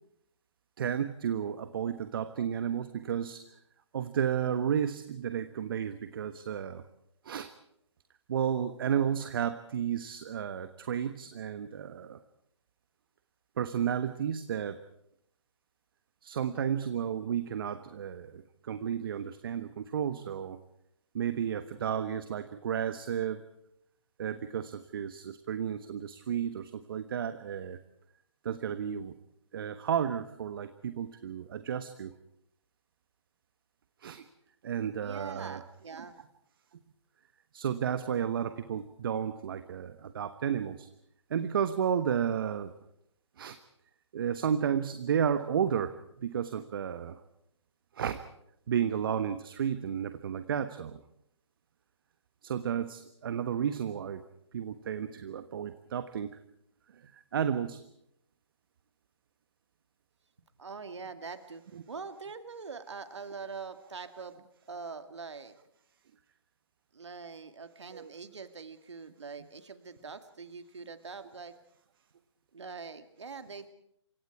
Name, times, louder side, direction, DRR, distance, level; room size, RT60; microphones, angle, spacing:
voice 1, 0.8-3.4 3.9-6.8 7.2-7.5 8.3-12.2 13.6-14.8 16.2-20.6 21.1-23.4 24.2-27.8 28.4-29.1 29.5-32.1 34.0-34.2 34.6-35.6 37.5-40.9 41.3-42.7 43.4-43.6 44.1-47.2 47.9-48.2 48.7-51.0 52.4-54.2 54.5-56.3 57.0-57.8 61.7-61.8 67.9-68.1, right 8 dB, 45° right, 10 dB, 1.3 m, -32 dB
voice 2, 35.0-36.2 60.6-61.6 61.9-65.6 66.9-71.5 72.5-73.7, right 5 dB, 65° right, 9 dB, 2.3 m, -43 dB
28.5 x 24.5 x 4.8 m, 0.74 s
figure-of-eight pair, 135°, 16 cm